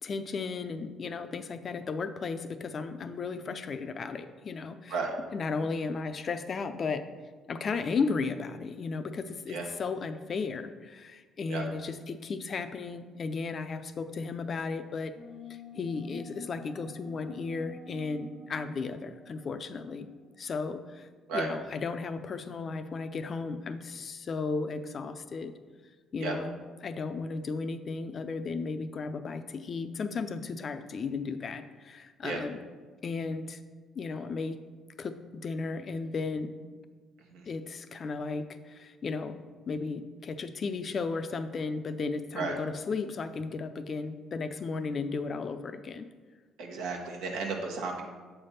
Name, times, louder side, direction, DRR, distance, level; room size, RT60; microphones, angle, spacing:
voice 1, 0.0-5.0 5.3-7.0 7.5-15.1 15.5-20.1 20.4-25.5 26.1-32.6 33.0-33.6 33.9-34.6 35.0-36.5 37.5-39.4 39.7-46.1, left 4 dB, 45° left, 9 dB, 0.5 m, -35 dB
sound 1, 15.1-20.3, left 2 dB, 85° left, 0.9 m, -48 dB
voice 2, 46.6-48.0, right 4 dB, 85° right, 1 dB, 1.0 m, -33 dB
7.1 x 3.4 x 5.6 m, 1.4 s
supercardioid pair, 80°, 0 cm